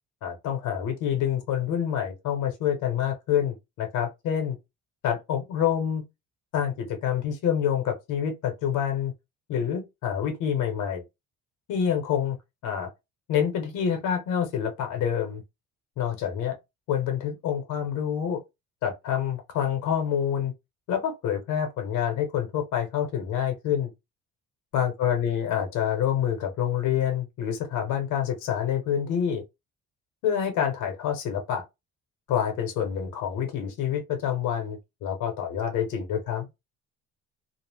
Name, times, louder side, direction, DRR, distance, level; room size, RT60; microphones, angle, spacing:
voice 1, 0.2-4.6 5.0-6.0 6.5-9.1 9.5-11.0 11.7-12.4 12.6-12.9 13.3-15.4 16.0-16.6 16.9-18.4 18.8-20.5 20.9-23.9 24.7-29.4 30.2-31.6 32.3-36.5, left 9 dB, 80° left, 0.8 m, -27 dB
2.4 x 2.0 x 3.3 m
cardioid pair, 170°, 30 cm